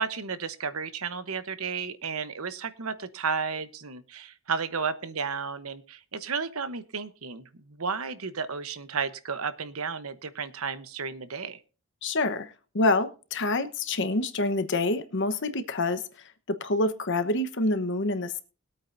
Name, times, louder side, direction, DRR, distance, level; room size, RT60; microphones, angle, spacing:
voice 1, 0.0-11.6, right 5 dB, 75° right, 12 dB, 1.0 m, -33 dB
voice 2, 12.0-16.0 16.5-18.4, left 2 dB, 55° left, 11 dB, 1.1 m, -27 dB
21.0 x 8.7 x 2.6 m, 0.36 s
head